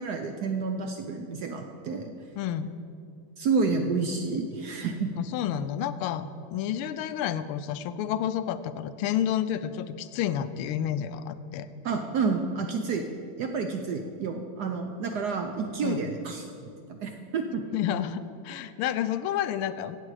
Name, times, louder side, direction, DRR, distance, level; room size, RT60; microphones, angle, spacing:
voice 1, 0.0-2.1 3.4-5.1 11.8-13.0 13.4-16.4 16.9-17.6, right 4 dB, 70° right, 4 dB, 1.0 m, -29 dB
voice 2, 2.4-2.7 5.2-11.7 15.8-16.0 17.7-20.0, left 10 dB, 85° left, 12 dB, 1.5 m, -30 dB
16.0 x 7.5 x 4.8 m, 2.5 s
omnidirectional pair, 2.3 m